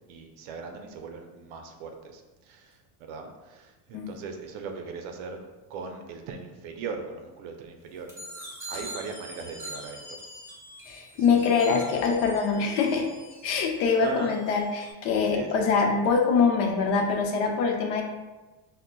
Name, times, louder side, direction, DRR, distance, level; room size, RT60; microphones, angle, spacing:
voice 1, 0.1-5.4 5.7-8.1 8.7-10.0 11.2-11.4 14.0-14.3 15.3-15.7, right 5 dB, 65° right, 4 dB, 0.6 m, -39 dB
sound 1, 8.1-14.9, right 1 dB, 5° right, 0.9 m, -44 dB
voice 2, 10.9-13.1 13.4-18.0, left 5 dB, 70° left, 1 dB, 0.7 m, -24 dB
5.1 x 2.1 x 2.2 m, 1.2 s
cardioid pair, 155°, 49 cm